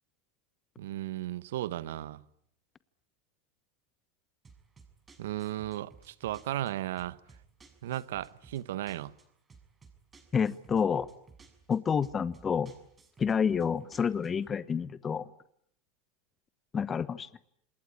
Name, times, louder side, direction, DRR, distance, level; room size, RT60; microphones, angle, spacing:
voice 1, 0.8-2.2 5.2-7.2 7.8-9.1, right 13 dB, 80° right, 1.0 m, -35 dB
sound 1, 4.4-14.5, right 5 dB, 25° right, 6.5 m, -58 dB
voice 2, 10.3-11.1 11.7-12.7 13.2-15.3 16.7-17.3, left 6 dB, 25° left, 1.2 m, -29 dB
27.5 x 20.0 x 9.8 m
hypercardioid pair, 105°, 0 cm